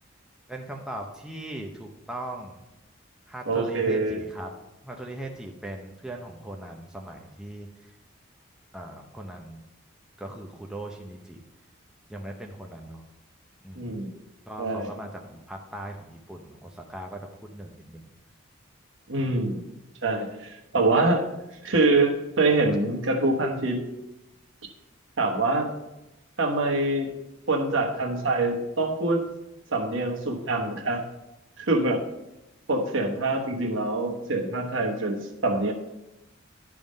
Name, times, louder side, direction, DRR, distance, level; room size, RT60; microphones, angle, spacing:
voice 1, 0.5-2.6 3.3-4.5 4.8-7.7 8.7-9.6 10.2-11.4 12.1-13.0 13.6-13.9 14.5-18.0, right 1 dB, 5° right, 0 dB, 0.6 m, -39 dB
voice 2, 3.5-4.2 13.8-14.1 14.6-14.9 19.1-19.6 20.0-21.2 21.6-23.8 25.2-25.7 26.4-27.1 27.5-29.2 29.7-31.0 31.6-32.0 32.7-35.7, right 2 dB, 70° right, 1 dB, 1.2 m, -25 dB
10.5 x 3.7 x 5.2 m, 0.93 s
head